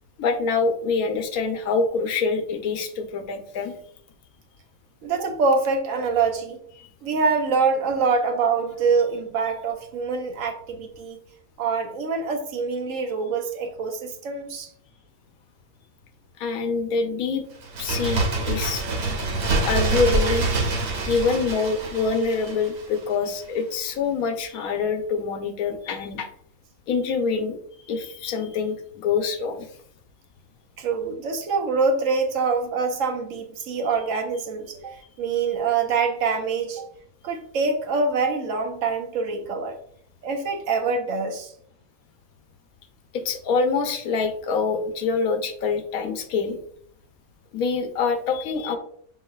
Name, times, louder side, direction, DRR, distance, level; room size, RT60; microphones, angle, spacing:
voice 1, 0.2-3.7 6.8-6.9 16.4-17.4 17.8-18.8 19.6-20.5 21.1-26.3 26.9-27.6 27.9-29.7 43.1-46.6 47.5-48.8, left 4 dB, 80° left, 7 dB, 1.1 m, -25 dB
voice 2, 5.0-6.6 7.0-11.2 11.6-14.7 30.8-36.9 37.2-39.8 40.2-41.5, right 4 dB, 70° right, 4 dB, 1.0 m, -25 dB
Bird, 17.6-23.1 23.4-23.5, right 3 dB, 85° right, 1.3 m, -26 dB
5.4 x 3.7 x 2.3 m, 0.64 s
omnidirectional pair, 1.5 m